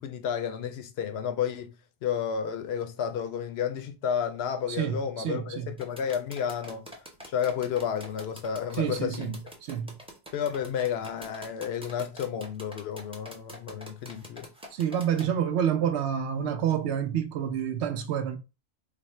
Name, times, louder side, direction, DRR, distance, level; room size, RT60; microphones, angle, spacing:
voice 1, 0.0-1.7 2.0-6.9 7.3-9.4 10.3-14.5, left 8 dB, 65° left, 0.7 m, -31 dB
voice 2, 4.7-5.7 8.8-9.9 14.7-18.4, right 9 dB, 65° right, 0.8 m, -28 dB
sound 1, 5.8-15.3, equal, 5° right, 0.6 m, -45 dB
3.4 x 2.0 x 4.2 m
omnidirectional pair, 1.3 m